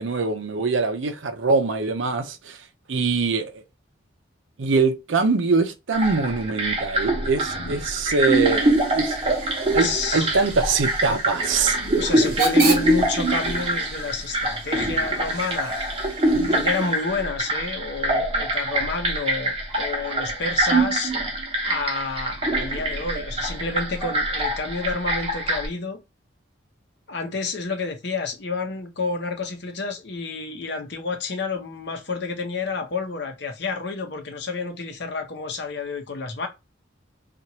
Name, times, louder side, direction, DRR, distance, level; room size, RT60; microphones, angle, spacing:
voice 1, 0.0-2.6 2.9-3.6 4.6-9.2 9.7-11.8, right 4 dB, 75° right, 0.6 m, -23 dB
sound 1, 5.9-25.7, right 1 dB, 30° right, 0.9 m, -24 dB
Hiss / Train / Alarm, 7.7-17.3, right 4 dB, 50° right, 1.1 m, -34 dB
voice 2, 9.8-10.3 11.9-15.8 16.5-21.2 21.6-26.0 27.1-36.5, left 4 dB, 60° left, 0.8 m, -29 dB
3.0 x 2.4 x 2.7 m
head